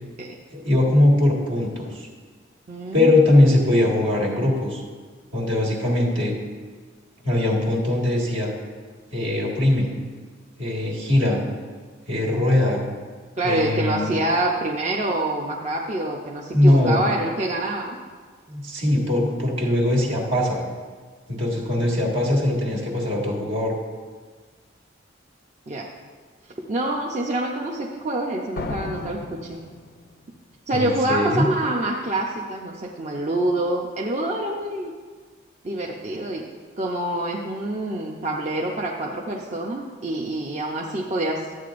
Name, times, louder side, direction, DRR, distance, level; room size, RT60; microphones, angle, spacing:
voice 1, 0.5-2.1 2.9-4.8 5.3-6.4 7.2-8.5 9.1-9.9 10.6-11.4 12.1-12.8 13.4-14.1 16.5-17.0 18.5-20.6 21.3-23.7 30.7-31.5, left 1 dB, 70° right, -2 dB, 1.9 m, -21 dB
voice 2, 2.7-3.2 13.4-18.0 21.5-22.1 25.7-25.9 26.7-29.6 30.7-34.9 35.6-36.4 36.8-41.5, right 1 dB, 35° right, -1 dB, 0.6 m, -26 dB
sound 1, 28.6-30.4, left 3 dB, 50° left, 0.4 m, -34 dB
12.0 x 8.3 x 2.5 m, 1.5 s
head